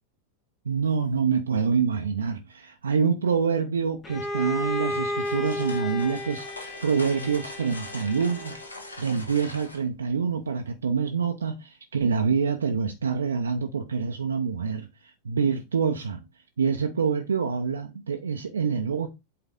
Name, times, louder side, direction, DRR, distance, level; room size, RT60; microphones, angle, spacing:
voice 1, 0.6-8.6 9.0-16.2 16.6-19.1, right 6 dB, 70° right, 0.7 m, -26 dB
Bowed string instrument, 4.0-8.9, left 1 dB, 20° left, 1.4 m, -33 dB
sound 1, 4.9-9.8, left 2 dB, 80° left, 1.4 m, -42 dB
8.5 x 3.9 x 3.6 m
figure-of-eight pair, 90°, 0 cm